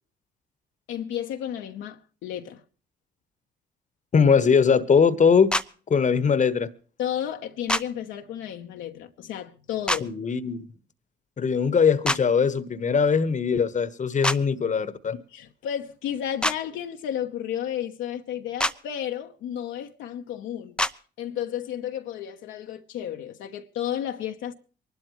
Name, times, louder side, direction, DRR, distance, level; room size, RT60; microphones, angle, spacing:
voice 1, 0.9-2.6 7.0-10.1 15.1-20.8 21.2-24.5, left 10 dB, 70° left, 1.1 m, -32 dB
voice 2, 4.1-5.5 5.9-6.7 10.0-10.7 11.4-15.2, left 6 dB, 40° left, 1.3 m, -21 dB
sound 1, 5.5-5.7 7.7-7.8 9.9-10.0 12.0-12.2 14.2-14.4 16.4-16.6 18.6-18.7 20.8-20.9, left 1 dB, 5° left, 0.7 m, -24 dB
24.0 x 12.5 x 3.2 m
hypercardioid pair, 55°, 20 cm